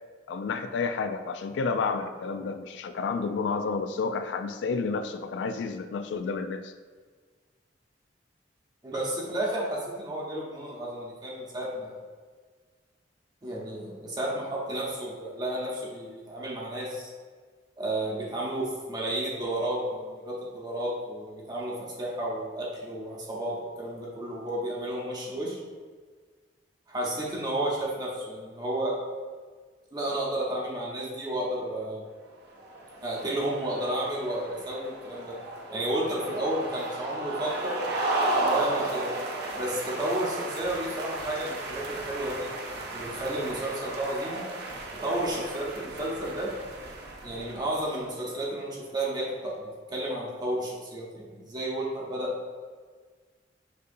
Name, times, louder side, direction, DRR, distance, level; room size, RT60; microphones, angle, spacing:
voice 1, 0.3-6.7, left 4 dB, 80° left, 9 dB, 0.3 m, -30 dB
voice 2, 8.8-11.9 13.4-17.1 17.8-25.6 26.9-29.0 29.9-32.0 33.0-35.3 35.7-37.8 38.3-39.1 39.5-42.5 42.9-44.4 45.0-46.5 47.2-52.3, right 1 dB, 25° right, -5 dB, 0.8 m, -32 dB
sound 1, 32.5-48.2, right 2 dB, 65° right, 0.6 m, -34 dB
6.3 x 2.7 x 2.6 m, 1.5 s
head